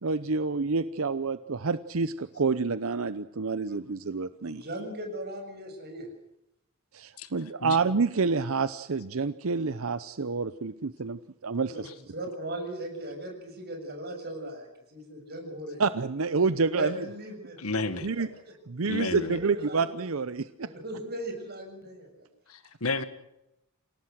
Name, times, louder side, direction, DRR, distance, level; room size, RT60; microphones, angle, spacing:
voice 1, 0.0-4.6 6.9-11.9 15.8-17.0 18.0-18.3 18.7-20.7, right 4 dB, 65° right, 13 dB, 0.7 m, -28 dB
voice 2, 4.4-6.1 11.7-11.8 12.1-15.8 16.8-18.2 19.0-20.0 20.6-22.3, right 1 dB, 45° right, 4 dB, 6.8 m, -38 dB
voice 3, 17.6-18.1 18.8-19.4 22.5-23.0, left 3 dB, 80° left, 11 dB, 1.7 m, -31 dB
28.5 x 17.5 x 6.4 m, 0.85 s
head